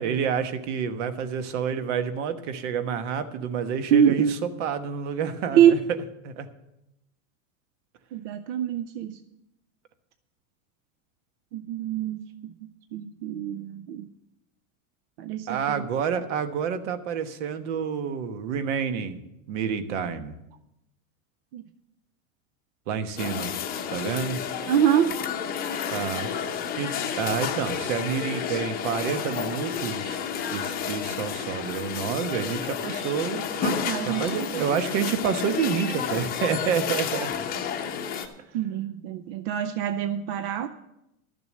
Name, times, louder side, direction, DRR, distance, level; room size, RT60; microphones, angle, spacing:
voice 1, 0.0-5.8 6.2-6.5 15.5-19.2 19.5-20.3 22.9-23.5 23.9-24.4 25.9-26.3 26.8-26.9 27.2-30.2 30.5-33.4 34.1-37.3, right 7 dB, 60° right, 9 dB, 1.2 m, -28 dB
voice 2, 3.9-4.3 5.5-5.8 8.1-9.2 11.5-12.2 12.9-14.1 15.2-15.6 21.5-21.6 24.7-25.1 33.6-34.6 38.5-40.7, right 9 dB, 45° right, 10 dB, 0.5 m, -24 dB
sound 1, 23.2-38.3, left 7 dB, 20° left, 0.8 m, -31 dB
12.5 x 6.7 x 7.5 m, 0.87 s
supercardioid pair, 155°, 41 cm